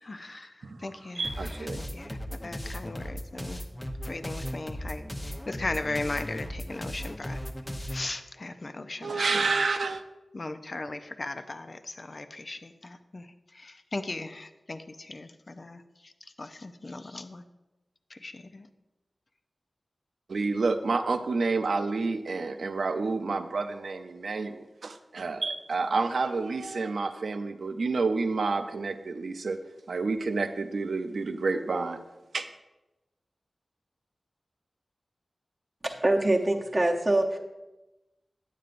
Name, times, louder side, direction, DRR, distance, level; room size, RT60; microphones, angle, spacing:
voice 1, 0.0-3.6 4.0-7.4 7.9-9.8 10.3-17.4 18.1-18.7, left 2 dB, 45° left, 9 dB, 0.5 m, -38 dB
sound 1, 1.2-8.1, equal, 20° left, 0.8 m, -37 dB
voice 2, 1.2-1.8 9.0-10.0 20.3-29.6 29.9-32.0 32.3-32.5, right 3 dB, 80° right, 8 dB, 0.5 m, -29 dB
voice 3, 35.8-37.4, right 1 dB, 25° right, 0 dB, 0.8 m, -24 dB
9.2 x 9.0 x 2.5 m, 1.0 s
wide cardioid pair, 70°, 0 cm